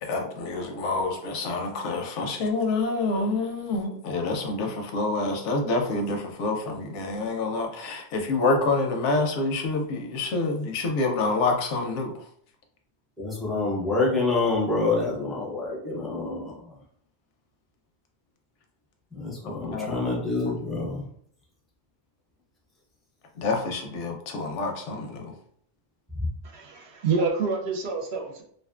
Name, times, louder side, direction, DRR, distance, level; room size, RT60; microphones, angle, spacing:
voice 1, 0.0-12.1 19.4-19.9 23.4-25.3, left 3 dB, 85° left, 0.9 m, -27 dB
voice 2, 13.2-16.5 19.1-21.0, left 3 dB, ahead, 0.3 m, -27 dB
voice 3, 26.5-28.4, right 4 dB, 70° right, 0.8 m, -27 dB
2.5 x 2.4 x 2.3 m
omnidirectional pair, 1.2 m